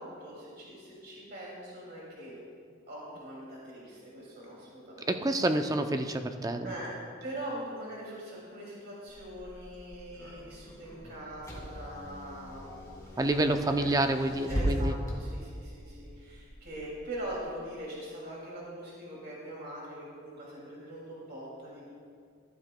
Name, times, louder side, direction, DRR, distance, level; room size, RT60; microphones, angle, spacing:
voice 1, 0.0-2.4 2.9-5.1 5.4-5.5 6.6-6.9 7.2-13.3 13.6-13.9 14.5-21.9, right 1 dB, 50° right, -5 dB, 2.4 m, -42 dB
voice 2, 5.1-6.7 13.2-14.9, right 1 dB, 20° right, 7 dB, 0.4 m, -28 dB
Car / Engine, 9.1-17.4, equal, 15° left, 1.9 m, -39 dB
14.5 x 12.0 x 2.2 m, 2.2 s
head